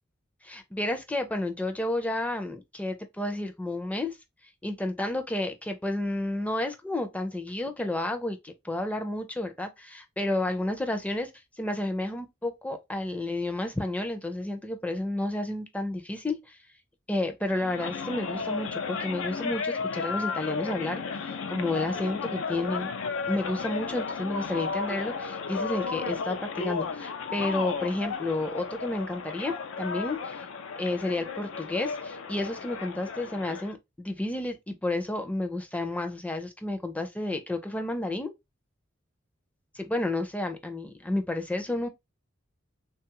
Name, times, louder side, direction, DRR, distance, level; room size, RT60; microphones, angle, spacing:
voice 1, 0.4-4.2 4.6-11.3 11.6-16.6 17.1-22.9 23.2-30.4 30.8-38.3 39.7-41.9, left 1 dB, 5° left, 0.4 m, -31 dB
sound 1, 17.5-33.7, left 5 dB, 80° left, 0.4 m, -34 dB
3.4 x 2.3 x 2.9 m
head